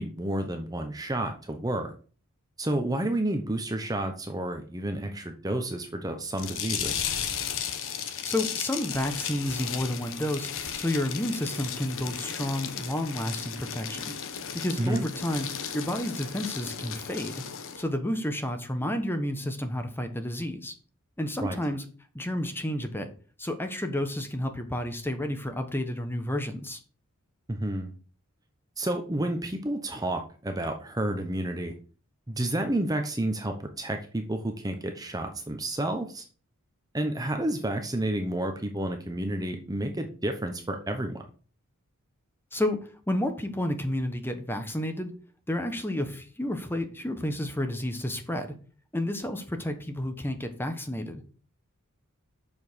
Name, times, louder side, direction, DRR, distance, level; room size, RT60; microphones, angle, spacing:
voice 1, 0.0-1.9 2.6-7.0 14.8-15.1 21.4-21.6 27.5-27.9 28.8-31.7 32.3-36.2 36.9-41.2, right 1 dB, 15° right, 5 dB, 0.9 m, -30 dB
sound 1, 6.4-17.8, left 8 dB, 60° left, 1.1 m, -35 dB
voice 2, 8.2-14.1 14.5-15.5 15.7-17.4 17.8-20.7 21.2-21.8 22.1-23.1 23.4-26.8 42.5-42.8 43.1-45.1 45.5-48.5 48.9-51.2, left 1 dB, 10° left, 7 dB, 1.2 m, -31 dB
7.0 x 5.4 x 6.3 m, 0.39 s
head